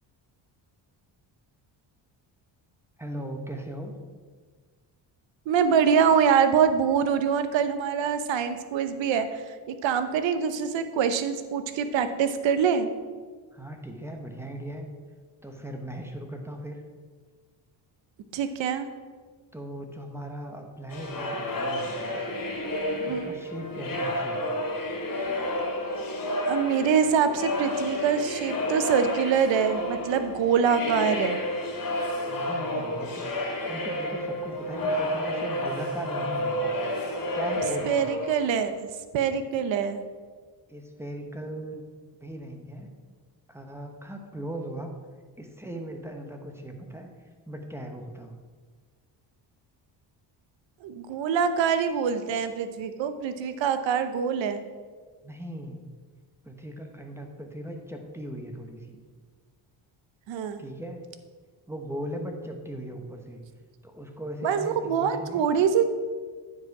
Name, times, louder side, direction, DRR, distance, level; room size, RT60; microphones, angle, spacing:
voice 1, 3.0-3.9 13.5-14.9 15.4-16.8 19.5-22.2 23.0-24.4 32.3-36.6 37.3-38.1 40.7-41.8 42.2-42.9 43.5-44.9 45.4-47.1 47.5-48.3 55.2-55.9 56.4-59.0 60.6-61.1 61.7-63.4 63.8-65.5, right 1 dB, 5° right, 3 dB, 1.0 m, -38 dB
voice 2, 5.5-12.9 18.3-18.9 23.0-23.3 26.5-31.4 37.8-38.9 39.1-40.0 50.8-54.6 60.3-60.6 64.4-65.9, right 7 dB, 70° right, 10 dB, 0.8 m, -24 dB
sound 1, 20.9-38.8, left 1 dB, 45° left, 2.2 m, -30 dB
9.4 x 5.0 x 4.7 m, 1.5 s
cardioid pair, 90°, 46 cm